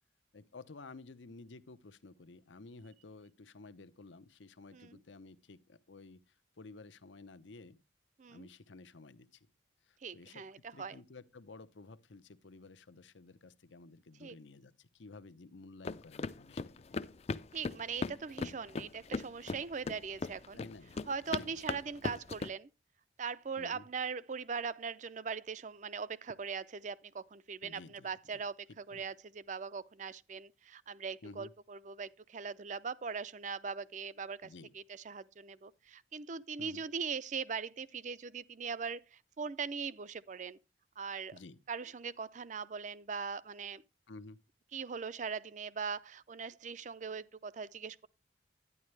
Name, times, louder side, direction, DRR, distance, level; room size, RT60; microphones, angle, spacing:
voice 1, 0.3-7.8 8.3-9.5 9.8-10.4 10.7-17.0 20.5-20.9 21.3-21.6 23.6-23.9 27.6-28.4 28.9-29.0 31.2-31.5 34.4-34.7 36.6-36.8 41.3-41.6 44.1-44.4, left 3 dB, 90° left, 0.8 m, -53 dB
voice 2, 10.0-11.0 14.2-14.4 17.5-20.6 21.1-22.7 23.2-40.6 41.0-41.4 41.7-43.8 44.7-48.1, right 5 dB, 40° right, 0.5 m, -41 dB
sound 1, 15.8-22.5, left 4 dB, 35° left, 0.4 m, -39 dB
11.0 x 9.6 x 3.2 m
head